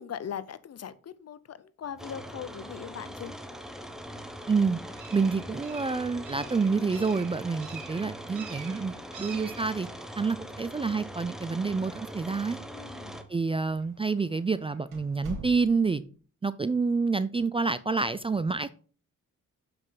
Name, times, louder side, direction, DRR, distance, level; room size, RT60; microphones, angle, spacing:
voice 1, 0.0-3.3 12.7-13.2, left 8 dB, 50° left, 16 dB, 0.7 m, -40 dB
sound 1, 1.8-15.6, right 6 dB, 65° right, 2.1 m, -51 dB
sound 2, 2.0-13.2, equal, ahead, 1.0 m, -42 dB
voice 2, 4.5-4.8 5.1-9.9 10.2-12.6 13.3-16.0 16.4-18.7, right 4 dB, 20° right, 14 dB, 0.4 m, -28 dB
sound 3, 11.0-11.7 11.9-12.0 12.8-12.9 13.6-13.9 14.3-14.4 14.9-16.0, right 1 dB, 80° right, 2.7 m, -43 dB
7.2 x 5.6 x 3.9 m, 0.39 s
cardioid pair, 75°, 32 cm